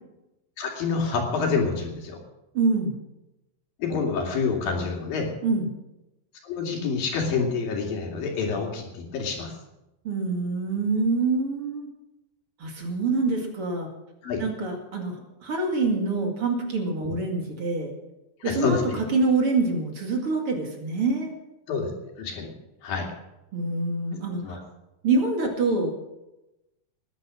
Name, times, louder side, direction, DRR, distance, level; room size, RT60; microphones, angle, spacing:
voice 1, 0.6-2.2 3.8-5.3 6.4-9.5 14.2-14.4 17.0-17.2 18.4-18.9 21.7-21.9 22.2-22.5 22.8-23.1 24.4-24.6, left 5 dB, 70° left, 1 dB, 4.2 m, -27 dB
voice 2, 2.5-3.0 5.4-5.7 10.0-11.9 12.6-13.9 14.4-17.9 18.4-21.3 23.5-24.4 25.0-26.1, right 3 dB, 40° right, 2 dB, 2.7 m, -25 dB
20.0 x 10.0 x 6.2 m, 0.95 s
omnidirectional pair, 4.3 m